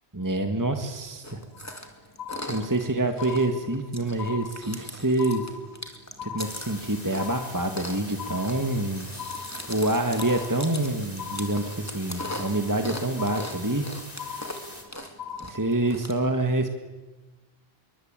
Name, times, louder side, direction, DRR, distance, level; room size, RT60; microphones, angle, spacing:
voice 1, 0.1-1.4 2.5-5.5 6.2-9.1 9.7-13.9 15.5-16.7, right 2 dB, 20° right, 6 dB, 1.7 m, -26 dB
Chewing mastication, 1.2-16.1, left 1 dB, 15° left, 2.7 m, -41 dB
sound 1, 1.5-1.9 2.2-2.9 3.2-3.9 4.2-4.9 5.2-5.9 6.2-6.9 7.2-7.9 8.2-8.9 9.2-9.9 10.2-10.9 11.2-11.9 12.2-12.9 13.2-13.9 14.2-14.9 15.2-15.9, left 7 dB, 75° left, 5.4 m, -39 dB
sound 2, 6.4-14.8, left 1 dB, 40° left, 4.3 m, -43 dB
27.5 x 23.5 x 9.0 m, 1.2 s
omnidirectional pair, 1.1 m